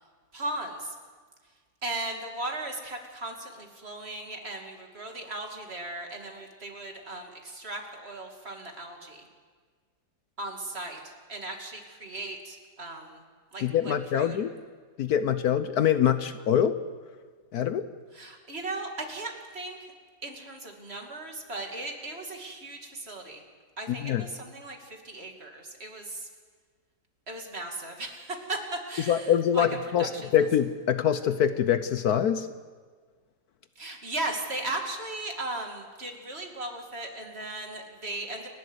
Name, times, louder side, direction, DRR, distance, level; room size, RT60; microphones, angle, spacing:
voice 1, 0.3-0.9 1.8-9.2 10.4-13.2 13.5-14.4 18.1-19.8 20.2-23.4 23.8-26.3 27.3-29.7 30.0-30.3 33.8-38.5, right 2 dB, 35° right, 2 dB, 2.7 m, -37 dB
voice 2, 13.6-14.5 15.0-16.7 17.5-17.9 23.9-24.2 29.1-32.5, left 9 dB, 65° left, 11 dB, 1.2 m, -24 dB
29.5 x 12.0 x 8.1 m, 1.5 s
omnidirectional pair, 1.9 m